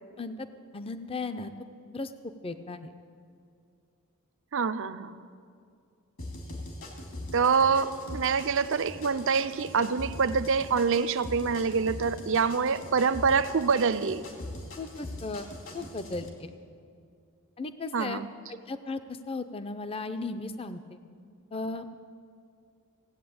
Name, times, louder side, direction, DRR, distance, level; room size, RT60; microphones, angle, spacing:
voice 1, 0.2-0.5 0.7-1.5 1.9-2.9 14.8-15.5 15.7-16.5 17.6-18.2 18.5-21.0 21.5-21.9, left 3 dB, 25° left, 10 dB, 0.6 m, -36 dB
voice 2, 4.5-5.2 7.3-14.2 17.9-18.3, right 5 dB, 60° right, 12 dB, 0.5 m, -26 dB
sound 1, 6.2-16.3, left 1 dB, 60° left, 2.4 m, -42 dB
17.0 x 8.6 x 8.6 m, 2.3 s
head